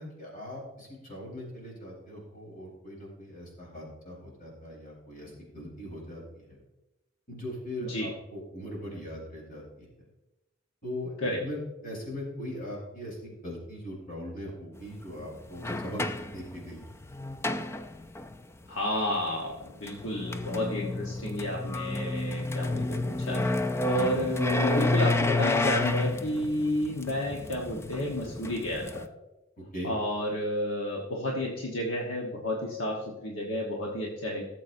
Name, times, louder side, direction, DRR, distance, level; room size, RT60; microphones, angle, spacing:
voice 1, 0.0-6.6 7.3-9.9 10.8-11.1 11.4-11.6 11.8-16.0 16.3-16.8 24.0-24.2 29.7-29.9, equal, 45° left, -2 dB, 4.0 m, -40 dB
sound 1, 14.8-14.9 15.5-18.3 19.7-29.1, left 2 dB, 15° left, 0.4 m, -30 dB
voice 2, 18.7-23.5 23.8-29.1 29.8-34.4, left 1 dB, 70° left, -2 dB, 1.2 m, -31 dB
16.5 x 7.4 x 2.6 m, 0.98 s
head